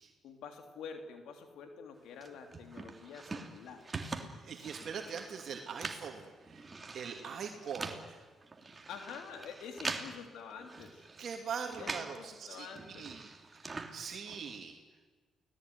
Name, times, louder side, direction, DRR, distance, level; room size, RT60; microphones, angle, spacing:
voice 1, 0.2-4.6 7.2-7.6 8.9-11.1 11.8-13.2, left 6 dB, 80° left, 5 dB, 3.3 m, -48 dB
sound 1, 2.2-12.2 12.5-14.6, right 3 dB, 25° right, 3.2 m, -44 dB
voice 2, 4.4-6.7 6.9-8.2 11.2-13.2 13.5-14.8, right 6 dB, 60° right, 3 dB, 2.8 m, -42 dB
29.0 x 19.0 x 9.7 m, 1.3 s
cardioid pair, 90°, 0 cm